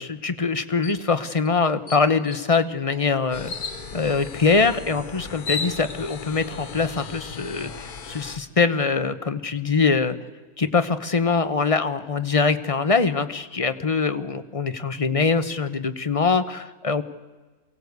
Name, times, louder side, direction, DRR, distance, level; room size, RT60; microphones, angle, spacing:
voice 1, 0.0-3.5 3.9-10.2 10.6-17.0, left 4 dB, 25° left, 11 dB, 0.8 m, -23 dB
sound 1, 0.8-1.0 1.4-1.5 1.9-2.5 3.5-3.8 4.9-5.0 5.3-6.2, left 4 dB, 60° left, 2.1 m, -32 dB
sound 2, 1.2-2.9 3.2-4.1 4.5-4.9 5.3-5.7 5.9-6.0 6.2-6.7 7.1-9.1, right 2 dB, 45° right, 3.9 m, -52 dB
sound 3, 3.3-8.4, left 5 dB, 80° left, 1.9 m, -38 dB
23.0 x 17.0 x 8.2 m, 1.3 s
omnidirectional pair, 1.6 m